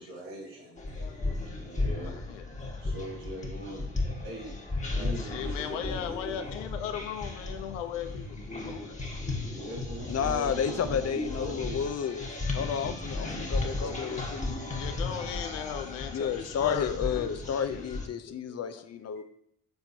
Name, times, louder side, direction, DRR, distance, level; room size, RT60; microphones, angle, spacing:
voice 1, 0.0-0.8 1.6-2.2 2.8-3.9 4.2-4.5 4.9-6.2 9.3-11.9 13.5-14.3, right 1 dB, 80° right, -3 dB, 1.7 m, -42 dB
sound 1, 0.8-18.1, left 2 dB, 20° left, 1.5 m, -35 dB
voice 2, 1.0-1.4 2.0-2.8 4.8-9.1 14.8-17.9 18.3-18.9, left 9 dB, 85° left, 9 dB, 0.6 m, -38 dB
voice 3, 10.1-12.3 12.5-14.5 16.1-19.2, left 7 dB, 45° left, 10 dB, 0.6 m, -31 dB
7.8 x 4.4 x 2.8 m, 0.68 s
hypercardioid pair, 45°, 37 cm